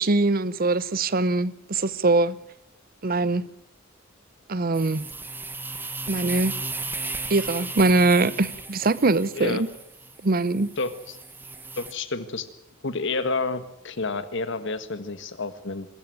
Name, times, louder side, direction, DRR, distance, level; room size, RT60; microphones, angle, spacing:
voice 1, 0.0-2.4 3.0-3.5 4.5-5.1 6.1-6.6 7.3-9.7 10.2-10.7, right 3 dB, 45° right, 0.7 m, -22 dB
sound 1, 4.7-11.9, right 3 dB, 10° right, 1.3 m, -35 dB
voice 2, 10.8-11.2 11.8-12.5 12.8-15.9, left 3 dB, 65° left, 1.6 m, -29 dB
23.0 x 14.0 x 9.4 m
head